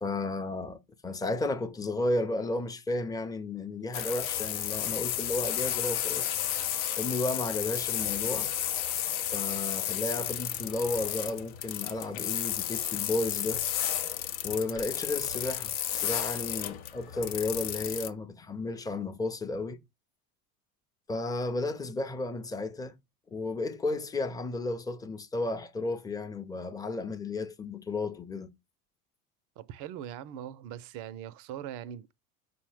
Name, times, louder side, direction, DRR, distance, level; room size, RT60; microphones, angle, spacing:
voice 1, 0.0-6.3 7.0-8.5 9.3-13.6 14.4-19.8 21.1-23.0 23.3-28.5, left 2 dB, 10° left, 0.5 m, -33 dB
sound 1, 3.9-18.1, left 11 dB, 65° left, 0.7 m, -32 dB
voice 2, 29.6-32.1, right 10 dB, 45° right, 0.5 m, -41 dB
5.2 x 2.1 x 4.8 m
hypercardioid pair, 85°, 45 cm